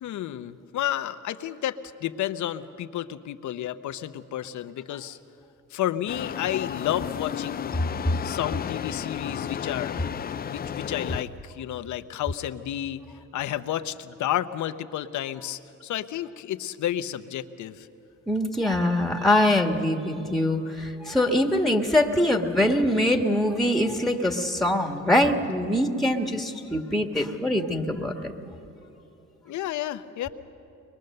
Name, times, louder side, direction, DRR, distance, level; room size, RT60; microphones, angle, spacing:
voice 1, 0.0-5.2 5.7-7.8 8.2-10.0 10.4-13.0 13.3-17.9 29.5-30.3, left 12 dB, 75° left, 11 dB, 0.8 m, -31 dB
sound 1, 6.1-11.2, left 8 dB, 30° left, 0.4 m, -33 dB
voice 2, 18.3-28.3, left 1 dB, ahead, 4 dB, 1.5 m, -23 dB
23.0 x 21.5 x 6.6 m, 2.9 s
cardioid pair, 90°, 30 cm